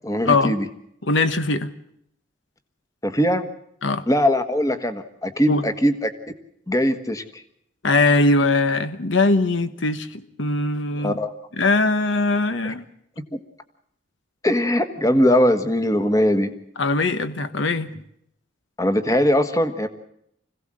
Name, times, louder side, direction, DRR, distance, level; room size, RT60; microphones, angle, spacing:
voice 1, 0.0-0.7 3.0-3.5 4.1-6.1 6.7-7.2 11.0-11.3 12.6-12.7 13.3-13.4 14.4-16.5 18.8-19.9, equal, 15° left, 9 dB, 1.4 m, -20 dB
voice 2, 1.0-1.7 3.8-4.0 5.5-5.7 7.8-11.2 11.6-12.8 16.8-17.9, left 3 dB, 70° left, 12 dB, 1.1 m, -21 dB
26.0 x 16.5 x 7.6 m, 0.75 s
head